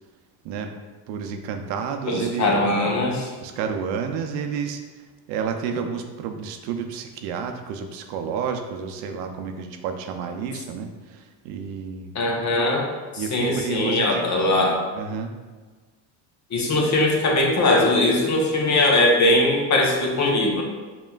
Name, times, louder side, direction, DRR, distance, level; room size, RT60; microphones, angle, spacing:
voice 1, 1.1-2.6 3.4-4.8 5.3-12.1 13.2-14.3 14.9-15.3, right 6 dB, 85° right, 5 dB, 0.6 m, -30 dB
voice 2, 2.1-3.3 12.1-12.9 13.1-14.8 16.5-20.6, left 2 dB, 40° left, 0 dB, 0.9 m, -20 dB
5.0 x 3.0 x 2.3 m, 1.3 s
supercardioid pair, 85°, 45 cm